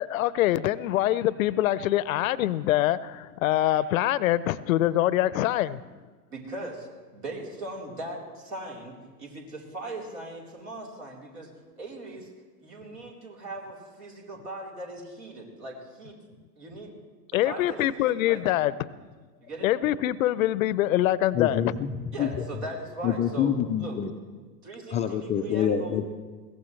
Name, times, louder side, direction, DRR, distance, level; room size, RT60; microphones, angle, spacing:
voice 1, 0.0-5.8 17.3-18.9 19.6-21.6, left 14 dB, 60° left, 18 dB, 0.6 m, -24 dB
voice 2, 6.3-11.5 11.8-12.3 12.6-16.2 16.6-16.9 17.3-18.4 18.8-18.9 19.4-19.7 22.1-24.0 24.6-26.0, right 1 dB, 70° right, -2 dB, 4.1 m, -39 dB
voice 3, 21.3-22.4 23.0-24.1 24.9-26.1, left 8 dB, 15° left, 4 dB, 0.4 m, -27 dB
21.5 x 17.0 x 3.2 m, 1.4 s
hypercardioid pair, 95°, 46 cm